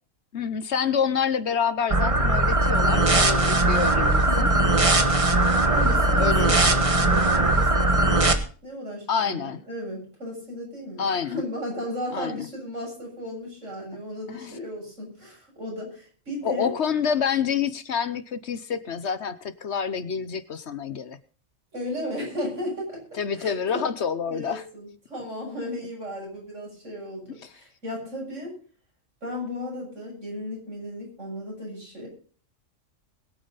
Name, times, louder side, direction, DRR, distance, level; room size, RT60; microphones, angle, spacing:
voice 1, 0.3-4.5 5.9-6.5 9.1-9.6 11.0-11.4 12.1-12.5 14.3-14.6 16.4-21.2 23.2-24.6, left 7 dB, 60° left, 14 dB, 1.1 m, -27 dB
sound 1, 1.9-8.3, right 2 dB, 25° right, 1.3 m, -20 dB
voice 2, 4.2-4.7 5.6-8.3 8.6-16.7 21.7-23.9 24.3-28.5 29.2-32.1, left 1 dB, 70° right, -1 dB, 7.9 m, -35 dB
21.5 x 9.0 x 4.0 m, 0.41 s
omnidirectional pair, 1.3 m